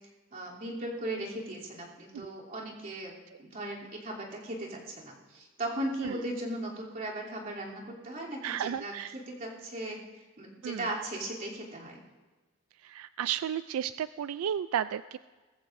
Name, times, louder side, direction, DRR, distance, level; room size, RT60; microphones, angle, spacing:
voice 1, 0.3-3.1 3.4-10.0 10.4-12.0, right 1 dB, 45° right, -5 dB, 3.1 m, -37 dB
voice 2, 8.4-9.2 10.6-10.9 12.8-15.2, right 9 dB, 90° right, 14 dB, 0.3 m, -33 dB
21.0 x 14.0 x 2.6 m, 1.3 s
head